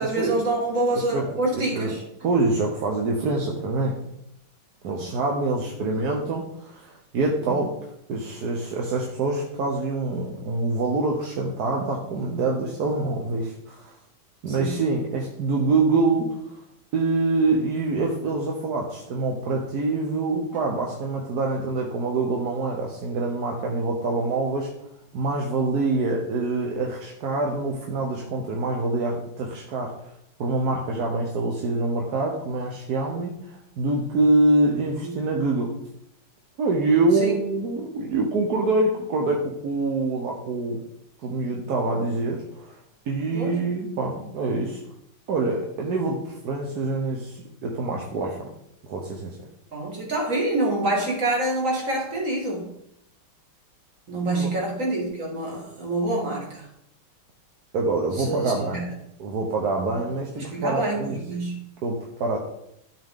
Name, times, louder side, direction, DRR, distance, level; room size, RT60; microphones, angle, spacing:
voice 1, 0.0-2.0 4.9-5.0 7.4-7.6 14.5-14.8 35.0-35.1 37.2-37.3 43.3-43.5 49.7-52.7 54.1-56.7 58.2-58.8 60.4-61.6, right 2 dB, 35° right, -2 dB, 2.3 m, -26 dB
voice 2, 0.9-1.3 1.5-1.9 2.2-4.0 4.8-7.7 8.1-13.9 14.4-16.5 16.9-24.7 25.1-30.1 30.4-35.7 36.6-40.8 41.2-42.8 43.1-44.8 45.3-48.5 48.9-49.4 54.3-54.5 57.7-58.8 59.2-61.2 61.8-62.4, right 3 dB, 55° right, 0 dB, 1.2 m, -25 dB
12.0 x 4.9 x 3.7 m, 0.78 s
omnidirectional pair, 2.4 m